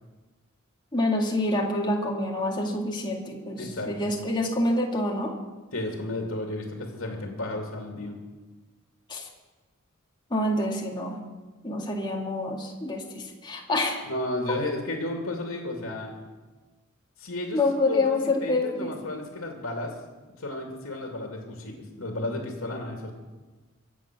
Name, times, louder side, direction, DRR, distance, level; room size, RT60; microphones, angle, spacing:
voice 1, 0.9-5.3 9.1-9.3 10.3-11.2 11.6-14.0 17.5-18.9, left 2 dB, 20° left, -1 dB, 2.0 m, -27 dB
voice 2, 3.6-4.1 5.7-8.2 14.0-16.2 17.2-17.6 17.9-19.9 20.4-23.1, left 1 dB, 70° left, 2 dB, 2.3 m, -33 dB
23.5 x 8.0 x 6.0 m, 1.2 s
head